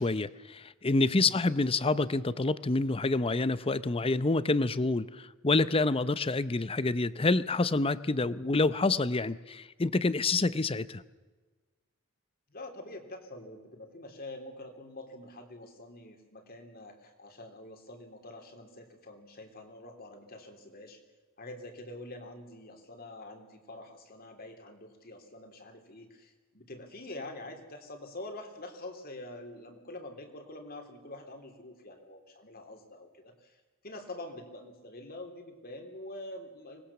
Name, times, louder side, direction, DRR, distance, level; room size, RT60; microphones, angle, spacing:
voice 1, 0.0-11.0, left 3 dB, 25° left, 16 dB, 0.7 m, -27 dB
voice 2, 12.5-21.0 21.4-36.8, left 1 dB, 45° left, 5 dB, 3.4 m, -46 dB
25.0 x 19.5 x 7.2 m, 1.3 s
head